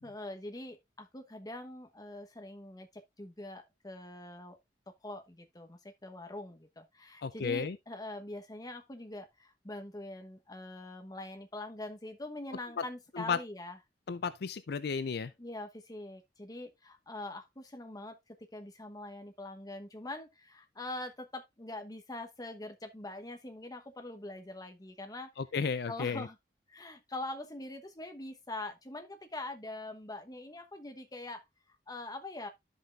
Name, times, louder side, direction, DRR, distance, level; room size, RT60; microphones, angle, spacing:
voice 1, 0.0-4.6 4.9-13.8 15.4-25.3 25.9-26.4 26.7-31.4 31.7-32.5, left 2 dB, 20° left, 1.1 m, -43 dB
voice 2, 7.2-7.8 13.2-13.4 14.1-15.3 25.4-26.3, left 5 dB, 65° left, 0.5 m, -33 dB
12.5 x 5.5 x 2.5 m
head